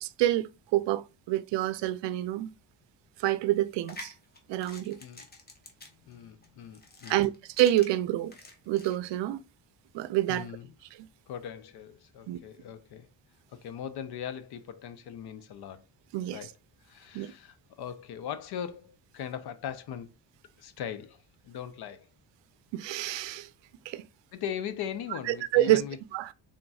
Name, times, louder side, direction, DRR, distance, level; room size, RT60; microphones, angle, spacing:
voice 1, 0.0-2.5 3.2-4.1 4.5-5.0 7.1-7.3 7.6-8.3 8.7-9.4 9.9-10.5 12.3-12.4 16.1-16.4 17.1-17.3 22.7-23.5 23.9-24.0 25.3-25.8 26.1-26.3, right 14 dB, 80° right, 0.5 m, -27 dB
sound 1, 3.7-8.9, left 2 dB, 20° left, 0.9 m, -49 dB
voice 2, 6.1-7.3 10.3-10.7 11.3-13.1 13.5-15.8 16.3-16.5 16.8-20.1 20.6-22.1 24.3-26.0, left 9 dB, 60° left, 0.6 m, -39 dB
4.0 x 3.7 x 2.3 m
cardioid pair, 135°, 43 cm